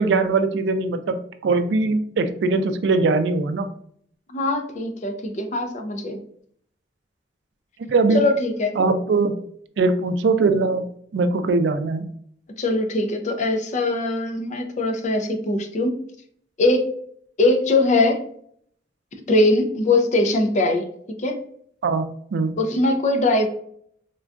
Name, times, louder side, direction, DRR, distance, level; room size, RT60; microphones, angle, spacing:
voice 1, 0.0-3.7 7.9-8.2 8.8-9.3 9.8-12.1 21.8-22.6, right 3 dB, 75° right, 9 dB, 0.3 m, -21 dB
voice 2, 4.3-6.2 8.1-8.7 12.6-15.9 16.6-16.8 17.4-18.2 19.3-21.4 22.6-23.5, left 2 dB, 40° left, 5 dB, 0.4 m, -21 dB
3.7 x 2.2 x 2.4 m, 0.64 s
head